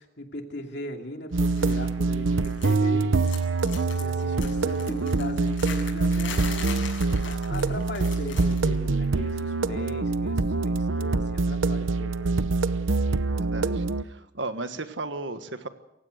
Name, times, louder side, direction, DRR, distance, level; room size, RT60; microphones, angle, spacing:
voice 1, 0.0-3.3 3.8-12.4, left 1 dB, 60° left, 3 dB, 2.8 m, -39 dB
sound 1, 1.3-14.0, right 3 dB, 90° right, 0.8 m, -25 dB
sound 2, 1.4-1.9 2.1-2.9 3.2-8.8 9.0-9.3 10.4-10.5, left 6 dB, 80° left, 7.7 m, -40 dB
voice 2, 13.3-15.7, right 3 dB, 70° right, 9 dB, 1.5 m, -35 dB
27.5 x 16.0 x 6.6 m, 0.89 s
head